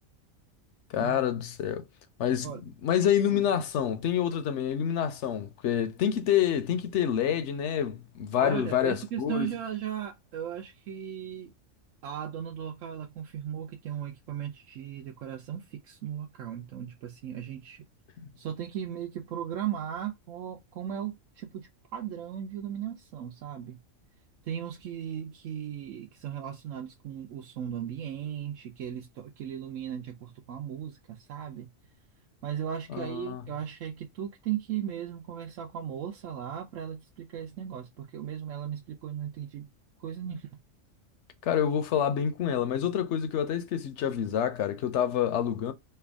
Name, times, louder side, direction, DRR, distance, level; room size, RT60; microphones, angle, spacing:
voice 1, 0.9-1.9 2.2-2.5 2.8-9.5 32.9-33.4 41.4-45.7, left 9 dB, 65° left, 0.9 m, -27 dB
voice 2, 8.4-11.5 12.0-17.8 18.4-23.8 24.4-31.7 32.4-39.7 40.0-40.5, right 9 dB, 75° right, 0.9 m, -37 dB
3.4 x 2.3 x 3.4 m
omnidirectional pair, 1.4 m